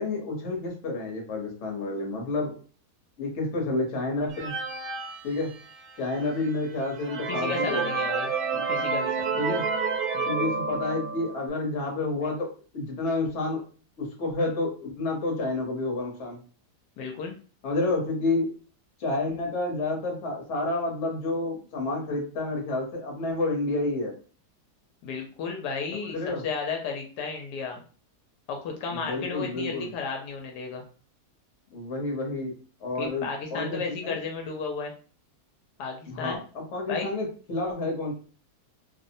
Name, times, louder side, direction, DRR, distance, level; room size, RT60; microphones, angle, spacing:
voice 1, 0.0-2.5 3.2-4.6 5.2-5.5 6.0-7.9 8.5-8.7 9.4-9.6 10.3-13.6 14.0-16.4 17.6-18.5 19.0-24.1 26.1-26.4 28.9-29.9 31.7-32.5 32.8-34.2 36.1-38.1, left 2 dB, 50° left, 0 dB, 1.0 m, -29 dB
sound 1, 4.3-6.0 6.5-6.6 7.0-11.5, right 5 dB, 70° right, 1.1 m, -29 dB
voice 2, 7.3-8.3 8.7-9.6 10.1-10.3 17.0-17.4 25.0-26.2 26.4-27.8 28.5-30.8 33.0-34.9 35.8-36.4 36.9-37.1, left 5 dB, 80° left, 2 dB, 1.1 m, -33 dB
2.8 x 2.0 x 2.6 m, 0.39 s
omnidirectional pair, 1.8 m